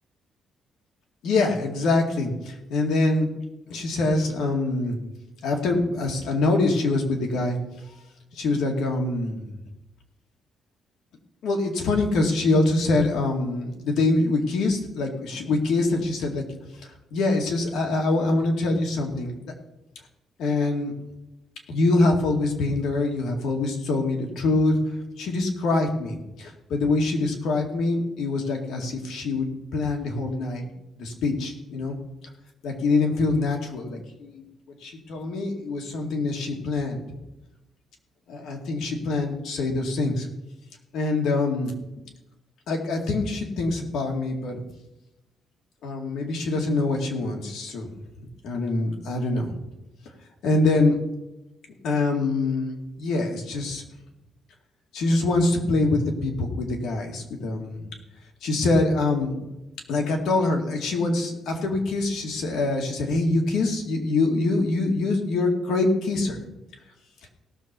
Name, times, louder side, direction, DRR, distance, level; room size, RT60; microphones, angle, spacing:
voice 1, 1.2-3.3 3.7-5.0 5.4-7.6 8.3-9.4 11.4-16.4 16.8-19.3 20.4-20.9 21.7-24.8 25.2-30.7 31.0-32.0 32.6-34.4 34.8-37.0 38.3-40.3 40.9-41.7 42.7-44.6 45.8-47.9 48.2-49.5 50.4-51.0 51.8-52.7 53.0-53.8 54.9-57.8 58.4-59.4 59.9-66.4, left 2 dB, 75° left, 1 dB, 2.3 m, -24 dB
17.5 x 6.8 x 4.5 m, 0.95 s
cardioid pair, 140°, 0 cm